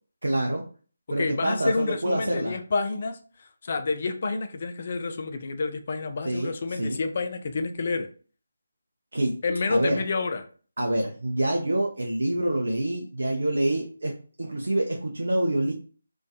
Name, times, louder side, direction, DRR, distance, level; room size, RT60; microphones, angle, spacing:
voice 1, 0.2-0.6 1.1-2.6 6.2-7.0 9.1-9.4 9.7-10.0 10.8-15.7, right 1 dB, 75° right, 1 dB, 0.4 m, -26 dB
voice 2, 1.2-8.1 9.4-10.4, left 4 dB, 45° left, 7 dB, 0.3 m, -29 dB
2.5 x 2.3 x 2.3 m, 0.40 s
figure-of-eight pair, 155°, 0 cm